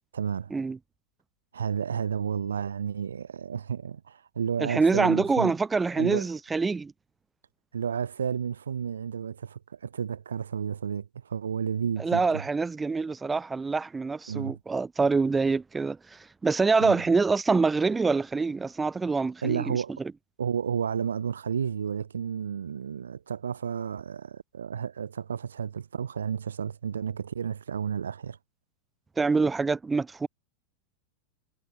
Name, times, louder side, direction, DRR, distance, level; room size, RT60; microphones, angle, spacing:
voice 1, 0.1-0.5 1.5-5.5 5.9-6.3 7.7-12.4 14.3-14.6 16.8-17.0 19.4-20.0 20.4-28.4, right 7 dB, 70° right, 0.9 m, -31 dB
voice 2, 4.6-6.9 12.0-19.8 29.2-30.3, right 4 dB, 10° right, 0.5 m, -25 dB
figure-of-eight pair, 90°, 0 cm